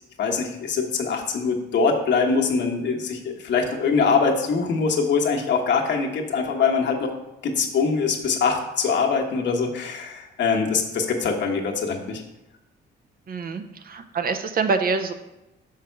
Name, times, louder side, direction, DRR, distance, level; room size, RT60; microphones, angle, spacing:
voice 1, 0.2-7.1 7.4-12.2, left 5 dB, 60° left, 1 dB, 1.3 m, -23 dB
voice 2, 13.3-15.1, right 4 dB, 50° right, 8 dB, 0.7 m, -25 dB
6.1 x 5.7 x 4.5 m, 0.93 s
cardioid pair, 90°, 20 cm